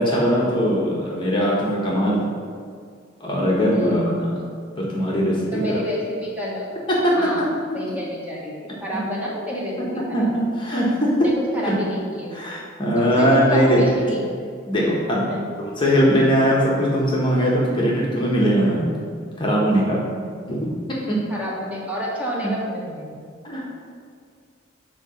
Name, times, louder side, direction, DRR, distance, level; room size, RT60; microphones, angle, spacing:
voice 1, 0.0-2.2 3.2-4.4 4.8-5.8 6.9-7.5 9.8-9.9 10.1-11.3 11.6-11.8 12.3-13.8 14.7-15.2 15.8-18.9 19.4-20.0 20.5-20.7 21.1-21.2 23.4-23.6, equal, 25° left, -4 dB, 1.0 m, -20 dB
voice 2, 3.7-4.2 5.5-6.7 7.2-10.3 11.2-12.4 12.9-14.5 15.3-15.4 19.9-20.3 21.3-23.2, equal, 10° right, -5 dB, 1.1 m, -29 dB
7.8 x 2.8 x 5.6 m, 2.1 s
head